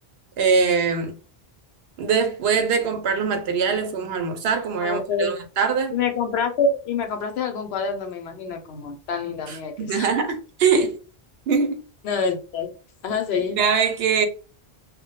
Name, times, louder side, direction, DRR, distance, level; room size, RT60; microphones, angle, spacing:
voice 1, 0.4-1.1 2.0-6.0 9.5-10.9 11.5-11.8 13.6-14.3, right 6 dB, 80° right, 0.8 m, -22 dB
voice 2, 4.8-5.3 5.9-10.1 10.7-10.8 12.0-12.7 13.0-13.6, left 5 dB, 90° left, 0.9 m, -26 dB
2.1 x 2.1 x 2.8 m
omnidirectional pair, 1.0 m